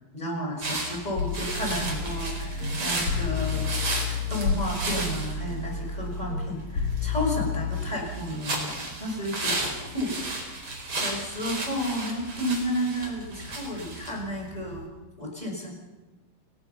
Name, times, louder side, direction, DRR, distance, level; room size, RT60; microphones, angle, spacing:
voice 1, 0.1-3.7 4.3-10.6 10.9-14.8 15.2-15.7, equal, 10° left, 0 dB, 5.8 m, -32 dB
sound 1, 0.6-14.8, right 2 dB, 40° right, 5.5 m, -34 dB
sound 2, 1.2-7.9, left 5 dB, 70° left, 3.9 m, -30 dB
28.5 x 19.0 x 5.8 m, 1.2 s
omnidirectional pair, 4.0 m